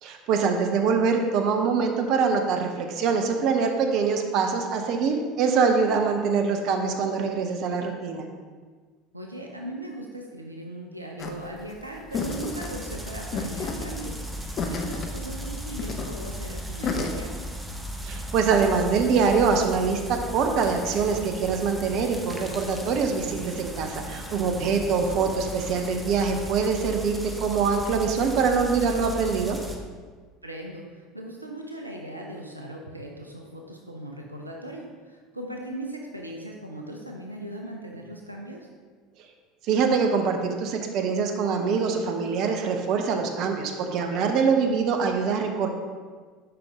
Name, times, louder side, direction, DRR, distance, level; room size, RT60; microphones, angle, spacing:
voice 1, 0.0-8.3 18.0-29.6 39.6-45.7, right 5 dB, 50° right, 4 dB, 0.6 m, -24 dB
voice 2, 9.1-17.5 30.4-38.7, right 1 dB, 90° right, 0 dB, 0.6 m, -38 dB
sound 1, 11.2-17.1, left 4 dB, 40° left, 0.7 m, -32 dB
sound 2, 12.1-29.8, equal, 5° right, 0.8 m, -36 dB
6.7 x 5.3 x 3.5 m, 1.5 s
figure-of-eight pair, 70°, 0 cm